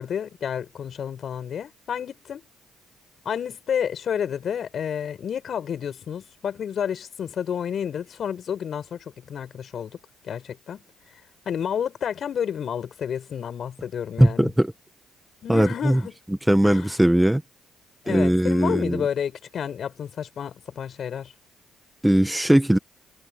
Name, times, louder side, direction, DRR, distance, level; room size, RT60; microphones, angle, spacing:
voice 1, 0.0-2.5 3.2-10.0 10.2-10.8 11.4-14.5 15.4-16.1 16.6-17.0 18.0-21.3, left 8 dB, 55° left, 6.1 m, -30 dB
voice 2, 14.2-14.7 15.5-16.0 16.5-17.4 18.1-19.0 22.0-22.8, right 1 dB, 5° right, 1.7 m, -19 dB
cardioid pair, 80°, 0 cm